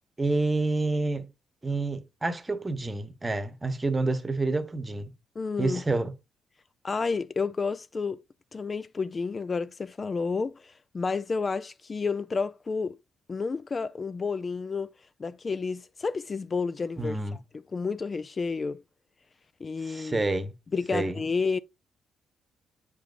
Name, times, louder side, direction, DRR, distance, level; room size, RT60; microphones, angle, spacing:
voice 1, 0.2-1.3 1.6-5.1 5.6-6.1 17.0-17.4 19.8-20.5 20.9-21.2, right 2 dB, 20° right, 1.0 m, -28 dB
voice 2, 5.4-5.8 6.8-8.2 8.5-13.0 13.3-14.9 15.2-18.8 19.6-20.3 20.7-21.6, left 4 dB, 35° left, 0.3 m, -30 dB
8.5 x 5.2 x 2.5 m
cardioid pair, 90°, 0 cm